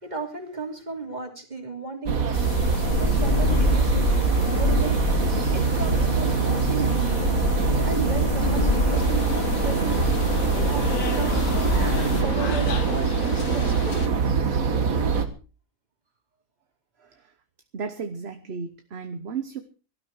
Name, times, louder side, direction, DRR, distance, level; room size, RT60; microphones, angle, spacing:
voice 1, 0.0-2.6 3.0-4.1 4.4-5.0 5.5-7.2 7.8-10.0 10.5-14.0, right 3 dB, 30° right, 4 dB, 3.0 m, -34 dB
sound 1, 2.1-15.3, right 5 dB, 65° right, 2.0 m, -24 dB
sound 2, 2.3-12.2, left 3 dB, 45° left, 1.9 m, -26 dB
sound 3, 8.9-14.1, left 5 dB, 80° left, 1.9 m, -36 dB
voice 2, 17.0-17.3 17.7-19.6, right 5 dB, 45° right, 8 dB, 1.2 m, -34 dB
18.5 x 13.0 x 4.7 m, 0.35 s
omnidirectional pair, 1.6 m